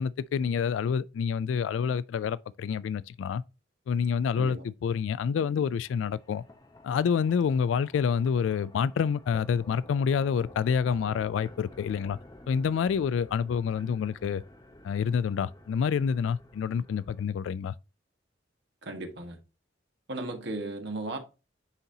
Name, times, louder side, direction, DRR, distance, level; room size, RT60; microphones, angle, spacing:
voice 1, 0.0-3.4 3.9-6.4 6.8-12.2 12.5-14.4 14.8-17.7, left 6 dB, 80° left, 0.3 m, -28 dB
sound 1, 5.8-17.2, left 1 dB, 20° left, 0.8 m, -52 dB
voice 2, 18.8-19.4 20.1-21.2, right 2 dB, 65° right, 1.4 m, -36 dB
9.7 x 4.0 x 2.7 m
head